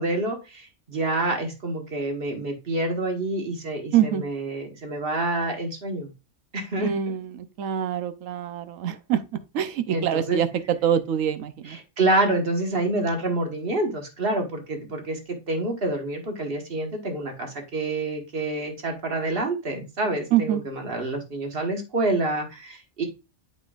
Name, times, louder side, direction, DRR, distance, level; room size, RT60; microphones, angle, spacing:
voice 1, 0.0-6.1 6.5-6.9 9.9-10.4 11.6-23.0, right 2 dB, 40° right, 1.6 m, -27 dB
voice 2, 6.8-9.2 9.5-11.8 20.3-20.6, right 9 dB, 70° right, 1.1 m, -25 dB
8.1 x 5.1 x 2.4 m
omnidirectional pair, 1.5 m